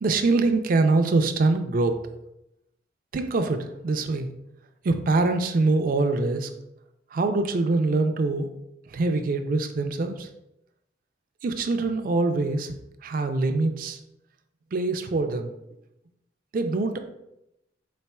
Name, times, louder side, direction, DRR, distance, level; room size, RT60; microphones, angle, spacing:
voice 1, 0.0-2.0 3.1-4.3 4.8-6.5 7.1-8.5 8.9-10.3 11.4-12.8 13.0-14.0 14.7-15.5 16.5-17.0, right 3 dB, 50° right, 7 dB, 0.4 m, -24 dB
4.1 x 4.0 x 2.2 m, 0.86 s
head